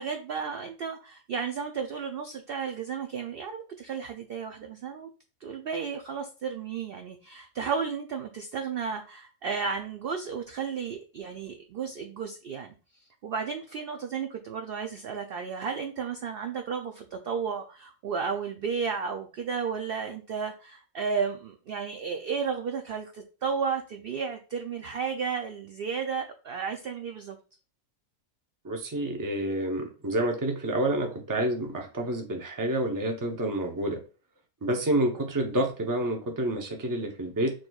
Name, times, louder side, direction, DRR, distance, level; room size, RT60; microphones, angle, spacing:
voice 1, 0.0-5.1 5.4-12.8 13.2-27.4, right 6 dB, 70° right, 5 dB, 0.5 m, -33 dB
voice 2, 28.6-34.0 34.6-37.5, right 1 dB, 20° right, 2 dB, 0.5 m, -28 dB
6.4 x 3.0 x 2.3 m, 0.35 s
omnidirectional pair, 1.5 m